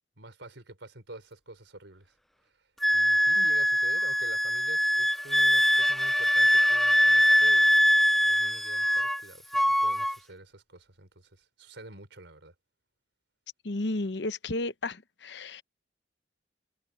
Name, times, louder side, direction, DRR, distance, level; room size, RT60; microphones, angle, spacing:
voice 1, 0.2-2.1 2.4-2.6 2.9-7.7 8.1-12.5, right 2 dB, 80° right, 4.1 m, -48 dB
Wind instrument woodwind instrument, 2.8-9.2 9.5-10.2, equal, ahead, 0.3 m, -23 dB
voice 2, 13.6-15.6, left 2 dB, 70° left, 0.9 m, -33 dB
head